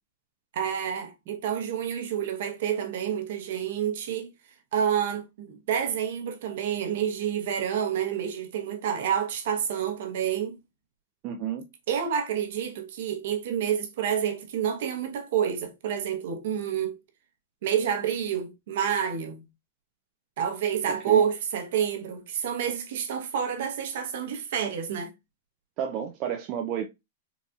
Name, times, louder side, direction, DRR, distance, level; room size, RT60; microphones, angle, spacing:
voice 1, 0.5-4.3 4.7-10.6 11.9-17.0 17.6-19.4 20.4-25.1, right 8 dB, 55° right, 0.9 m, -28 dB
voice 2, 11.2-11.7 21.1-21.2 25.8-26.8, right 9 dB, 30° right, 0.4 m, -31 dB
3.9 x 2.8 x 2.3 m
supercardioid pair, 165°, 0 cm